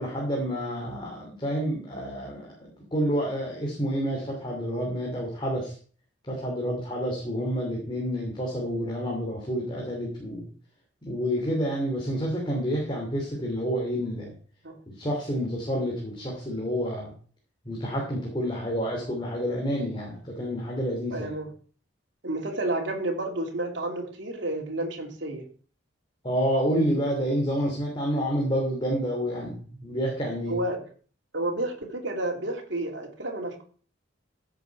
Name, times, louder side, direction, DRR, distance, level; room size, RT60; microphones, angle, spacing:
voice 1, 0.0-2.5 2.9-5.7 6.2-10.5 11.0-14.3 14.9-17.1 17.6-21.3 26.2-30.6, equal, 25° left, -1 dB, 2.9 m, -29 dB
voice 2, 21.1-21.5 22.2-25.4 30.5-30.8 31.3-33.6, right 2 dB, 70° right, 1 dB, 2.9 m, -30 dB
15.0 x 7.6 x 4.8 m, 0.43 s
head